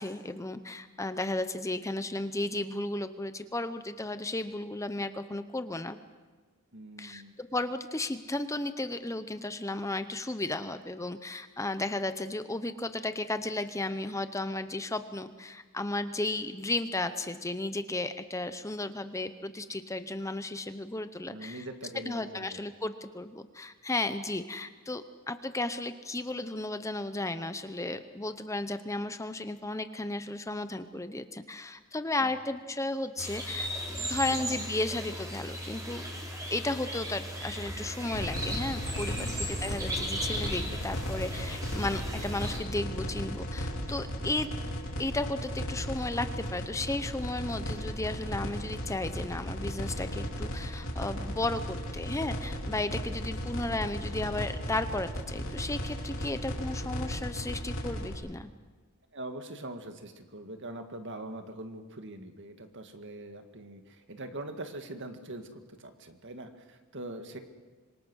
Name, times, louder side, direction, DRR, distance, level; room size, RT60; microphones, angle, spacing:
voice 1, 0.0-6.0 7.0-21.7 22.0-36.0 36.5-44.5 45.0-58.5, left 2 dB, 15° left, 10 dB, 0.8 m, -34 dB
voice 2, 6.7-7.4 21.3-22.6 32.2-32.4 34.3-34.6 39.1-39.5 59.1-67.4, right 1 dB, 55° right, 7 dB, 2.1 m, -43 dB
sound 1, 33.2-42.6, equal, 15° right, 4.6 m, -37 dB
sound 2, 38.1-58.1, equal, 60° left, 4.0 m, -35 dB
26.5 x 23.5 x 6.4 m, 1.4 s
head